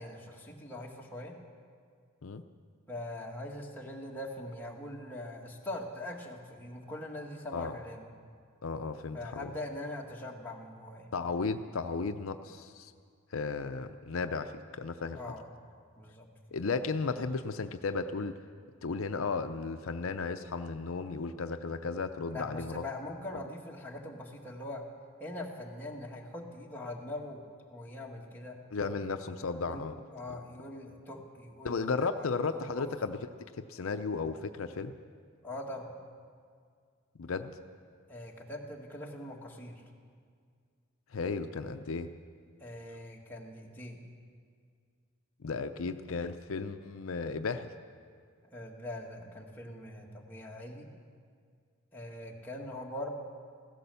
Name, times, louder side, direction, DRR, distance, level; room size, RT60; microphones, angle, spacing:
voice 1, 0.0-1.3 2.9-8.1 9.1-11.1 15.1-15.4 16.0-16.3 22.3-24.8 25.2-27.4 27.7-28.9 29.6-29.8 30.1-32.3 32.5-32.9 35.4-36.0 38.1-39.8 42.6-44.0 48.5-50.9 51.9-53.1, left 1 dB, 10° left, -2 dB, 1.8 m, -42 dB
voice 2, 8.6-9.5 11.1-12.9 13.3-15.2 16.5-18.3 18.8-22.8 28.7-30.0 30.3-30.4 31.6-34.9 37.2-37.5 41.1-42.1 45.4-47.7, left 4 dB, 75° left, 8 dB, 0.6 m, -34 dB
16.0 x 13.0 x 6.9 m, 2.1 s
head